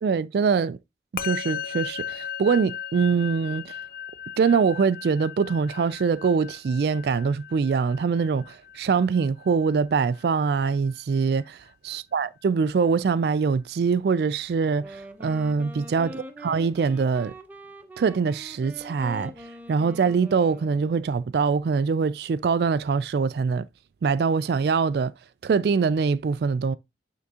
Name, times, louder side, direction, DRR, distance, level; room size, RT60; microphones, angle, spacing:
voice 1, 0.0-0.8 1.2-3.7 4.4-11.6 11.8-17.3 18.0-19.3 19.7-23.7 24.0-25.1 25.4-26.8, right 5 dB, 60° right, 0.3 m, -23 dB
Musical instrument, 1.2-10.7, left 8 dB, 50° left, 0.5 m, -37 dB
Wind instrument woodwind instrument, 14.7-21.2, equal, 10° right, 0.7 m, -43 dB
9.4 x 3.6 x 2.8 m
head